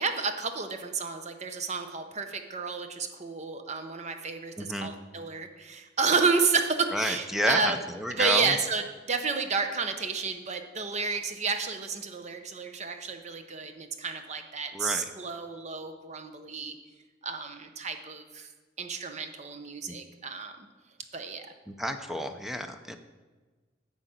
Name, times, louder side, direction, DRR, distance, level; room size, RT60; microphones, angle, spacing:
voice 1, 0.0-7.8 8.1-16.8 17.2-18.5 18.8-20.7 21.1-21.5, right 4 dB, 40° right, 7 dB, 0.8 m, -31 dB
voice 2, 4.6-4.9 6.9-8.5 14.7-15.1 19.9-20.0 21.7-23.0, equal, ahead, 7 dB, 0.6 m, -31 dB
9.8 x 5.0 x 8.0 m, 1.3 s
head